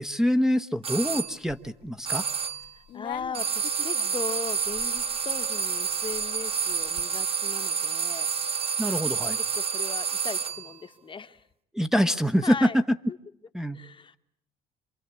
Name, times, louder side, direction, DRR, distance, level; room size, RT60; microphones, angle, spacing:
voice 1, 0.0-2.2 8.8-9.4 11.7-12.7 13.5-13.8, equal, 5° right, 6 dB, 1.0 m, -25 dB
sound 1, 0.8-1.3 2.1-2.7 3.3-10.7, right 6 dB, 35° right, 1.1 m, -29 dB
sound 2, 1.2-2.0 2.4-7.0, left 13 dB, 80° left, 1.5 m, -45 dB
voice 2, 2.7-8.3 8.6-8.7 9.4-11.5 12.4-12.8 13.1-13.2 13.7-14.2, left 5 dB, 30° left, 10 dB, 1.2 m, -38 dB
27.5 x 23.5 x 8.4 m, 0.75 s
cardioid pair, 110°, 17 cm